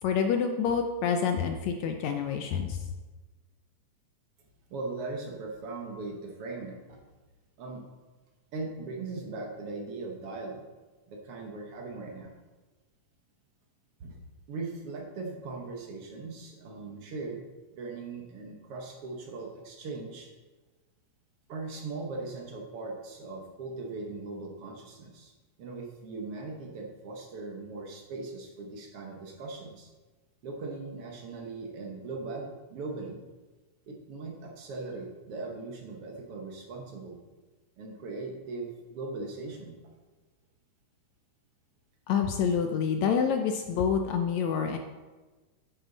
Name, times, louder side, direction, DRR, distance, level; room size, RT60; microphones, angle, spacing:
voice 1, 0.0-2.8 42.1-44.8, left 7 dB, 75° left, 5 dB, 1.7 m, -27 dB
voice 2, 4.7-7.0 7.6-7.8 8.5-10.7 11.1-12.3 14.0-14.2 14.5-17.4 17.8-20.3 21.5-25.3 25.6-29.9 30.4-33.3 33.9-37.2 37.8-39.8, right 3 dB, 55° right, 1 dB, 1.8 m, -39 dB
10.5 x 8.5 x 4.0 m, 1.2 s
omnidirectional pair, 3.7 m